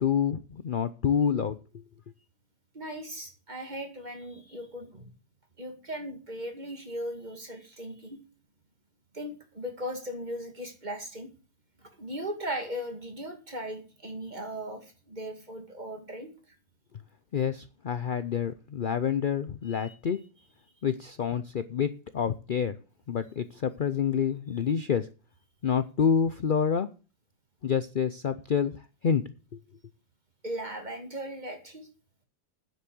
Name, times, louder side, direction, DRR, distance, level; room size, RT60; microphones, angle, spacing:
voice 1, 0.0-1.6 17.3-20.2 20.8-22.8 23.1-25.1 25.6-26.9 27.6-28.7 29.0-29.2, left 7 dB, 60° left, 13 dB, 0.5 m, -27 dB
voice 2, 2.7-5.1 5.6-8.2 9.1-11.3 12.0-16.3 19.7-19.9 30.4-31.9, equal, 25° right, 5 dB, 2.4 m, -38 dB
9.7 x 8.1 x 7.8 m, 0.36 s
omnidirectional pair, 1.7 m